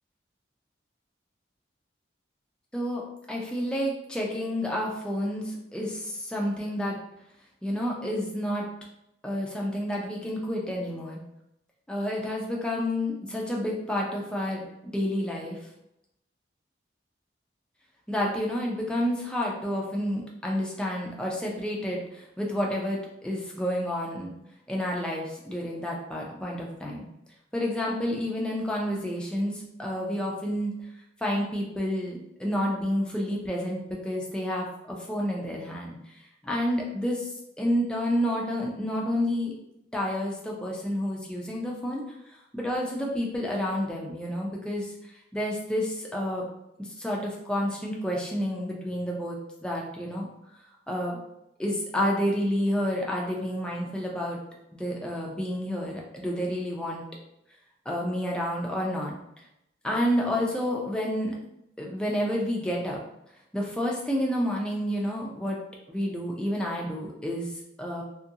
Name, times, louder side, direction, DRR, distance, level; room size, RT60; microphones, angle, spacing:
voice 1, 2.7-7.0 7.6-8.7 9.2-11.2 11.9-15.7 18.1-24.3 24.7-27.0 27.5-30.7 31.2-39.5 39.9-46.5 46.8-50.3 50.9-51.2 51.6-54.4 54.7-57.0 57.9-59.4 59.8-61.4 61.8-63.0 63.5-65.6 65.9-68.0, equal, 5° left, -2 dB, 0.4 m, -30 dB
2.7 x 2.5 x 2.7 m, 0.83 s
head